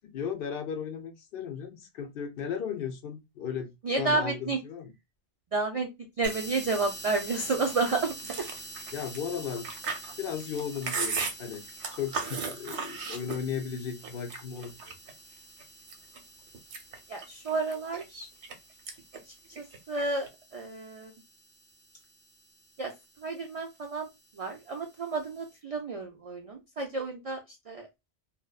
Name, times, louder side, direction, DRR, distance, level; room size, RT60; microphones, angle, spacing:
voice 1, 0.0-3.7 4.0-4.9 8.9-9.7 10.2-11.6 11.9-15.0, left 7 dB, 65° left, 0.7 m, -35 dB
voice 2, 3.8-4.6 5.5-5.9 6.2-8.5 17.1-18.3 19.6-21.1 22.8-22.9 23.2-24.1 24.4-27.4 27.7-27.9, right 3 dB, 60° right, 0.3 m, -31 dB
sound 1, 6.2-25.6, right 1 dB, 10° right, 0.7 m, -47 dB
Chewing mastication, 8.2-13.7 14.0-15.1 15.6-16.2 16.5-18.5 18.9-19.2 19.5-20.3, right 5 dB, 90° right, 0.9 m, -36 dB
2.7 x 2.2 x 2.3 m
omnidirectional pair, 1.1 m